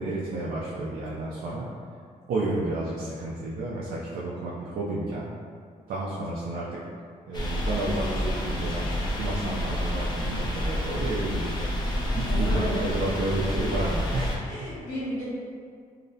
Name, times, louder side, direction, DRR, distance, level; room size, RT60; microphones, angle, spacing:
voice 1, 0.0-1.7 2.3-5.2 5.9-6.8 7.2-11.7 12.2-14.5, right 2 dB, 85° right, -6 dB, 0.4 m, -31 dB
sound 1, 7.3-14.4, left 1 dB, 30° left, 0.4 m, -29 dB
voice 2, 12.2-12.8 14.4-15.2, equal, 75° left, -10 dB, 1.5 m, -33 dB
2.7 x 2.0 x 2.6 m, 2.1 s
wide cardioid pair, 155°, 15 cm